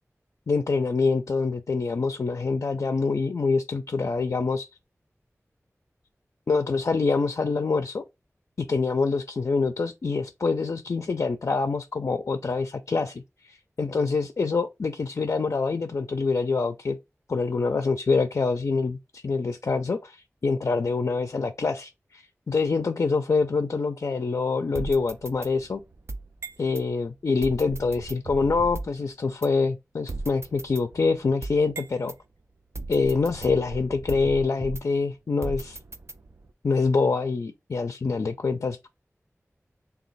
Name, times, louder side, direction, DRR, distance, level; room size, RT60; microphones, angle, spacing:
voice 1, 0.5-4.7 6.5-8.0 8.6-17.0 17.3-25.8 26.6-32.1 32.9-35.8 36.6-38.9, left 4 dB, 70° left, 0.4 m, -25 dB
sound 1, 24.7-26.9 27.4-29.0 29.4-29.5 30.1-32.2 32.7-35.0 35.4-36.5, right 2 dB, 55° right, 0.4 m, -37 dB
3.0 x 2.3 x 4.0 m
cardioid pair, 40°, 5 cm